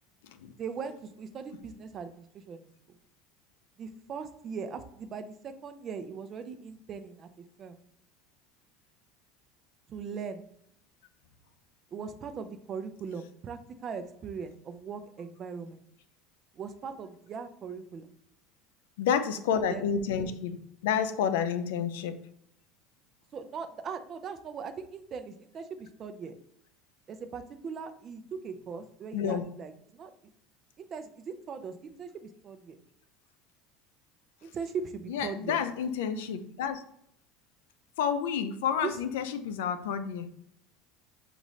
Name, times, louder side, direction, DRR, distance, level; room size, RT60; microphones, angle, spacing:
voice 1, 0.6-2.7 3.8-7.3 7.6-7.7 9.9-10.4 11.9-15.8 16.6-18.1 19.7-19.9 23.3-26.4 27.1-30.1 30.8-32.8 34.4-35.6 38.8-38.9, right 6 dB, 35° right, 8 dB, 0.5 m, -39 dB
voice 2, 19.0-22.2 29.1-29.4 35.1-36.8 38.0-40.3, left 7 dB, 90° left, 11 dB, 0.4 m, -30 dB
6.2 x 2.5 x 3.1 m, 0.70 s
supercardioid pair, 120°, 0 cm